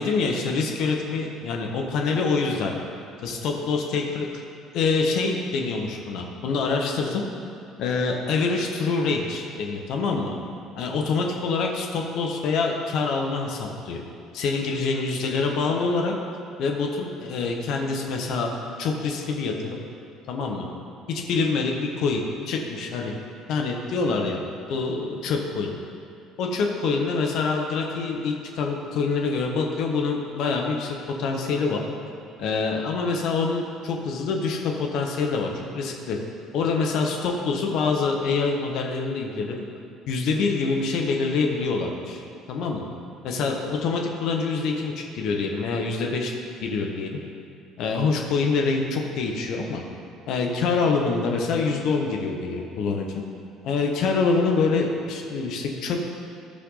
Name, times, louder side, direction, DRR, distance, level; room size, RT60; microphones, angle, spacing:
voice 1, 0.0-2.7 3.2-4.3 4.7-7.2 7.8-10.4 10.8-14.0 14.3-16.1 16.6-18.5 18.8-19.8 20.3-20.7 21.1-23.1 23.5-24.4 24.7-25.7 26.4-31.8 32.4-36.2 36.5-39.6 40.1-42.2 42.5-42.9 43.2-46.3 46.6-47.2 47.8-49.8 50.3-53.1 53.6-56.1, left 4 dB, 55° left, 1 dB, 1.1 m, -25 dB
14.0 x 5.8 x 4.0 m, 2.6 s
figure-of-eight pair, 55°, 0 cm